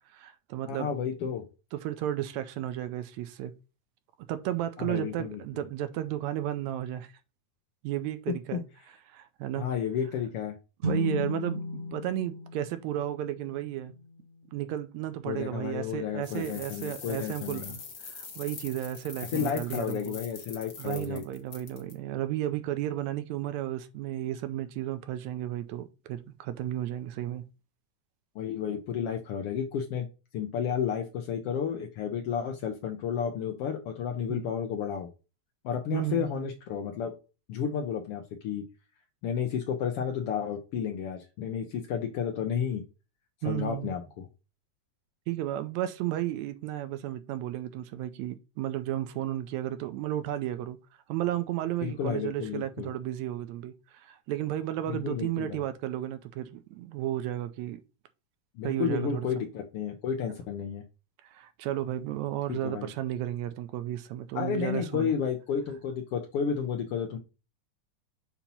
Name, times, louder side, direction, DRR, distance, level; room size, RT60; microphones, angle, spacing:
voice 1, 0.1-0.9 1.7-3.5 4.3-7.1 7.8-8.7 9.1-9.7 10.8-13.9 14.5-20.2 20.8-27.4 34.3-34.5 35.9-36.5 43.4-43.9 45.3-50.8 51.1-57.8 58.6-59.3 61.2-65.1, right 13 dB, 80° right, 1.7 m, -33 dB
voice 2, 0.7-1.4 4.8-5.4 8.5-8.6 9.5-10.5 15.3-17.8 19.3-21.2 28.3-30.1 30.3-35.1 35.6-37.1 37.5-38.6 39.2-42.8 43.4-44.3 51.8-52.9 54.9-55.6 58.6-60.8 62.5-62.9 64.3-67.2, left 7 dB, 90° left, 1.3 m, -32 dB
sound 1, 10.8-14.4, left 1 dB, 45° right, 1.2 m, -35 dB
sound 2, 16.2-21.9, left 5 dB, 60° left, 0.9 m, -43 dB
7.1 x 2.9 x 5.3 m
omnidirectional pair, 3.6 m